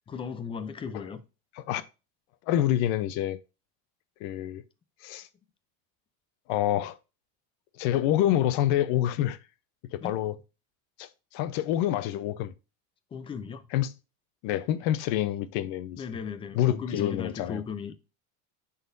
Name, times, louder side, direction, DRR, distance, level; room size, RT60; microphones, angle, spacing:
voice 1, 0.1-1.2 10.0-10.1 13.1-13.7 16.0-17.9, left 6 dB, 15° left, 0.4 m, -36 dB
voice 2, 2.5-3.4 4.2-4.6 5.0-5.3 6.5-7.0 7.8-9.4 9.9-10.3 11.0-12.5 13.7-13.9 14.4-16.0 16.5-17.6, left 12 dB, 60° left, 0.8 m, -27 dB
10.5 x 4.1 x 2.6 m
cardioid pair, 160°, 40 cm